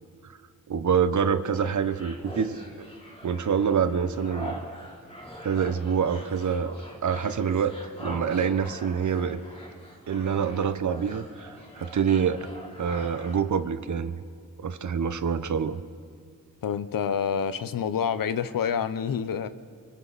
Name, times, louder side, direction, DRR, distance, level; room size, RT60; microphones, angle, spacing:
voice 1, 0.7-2.6 3.2-4.6 5.4-6.7 7.0-9.4 10.1-12.5 12.8-14.1 14.6-15.8, right 7 dB, 60° right, 12 dB, 1.0 m, -26 dB
sound 1, 1.5-13.4, equal, 15° left, 3.6 m, -43 dB
voice 2, 16.6-19.5, left 7 dB, 80° left, 13 dB, 0.9 m, -27 dB
29.5 x 24.5 x 4.2 m, 2.1 s
wide cardioid pair, 100°, 34 cm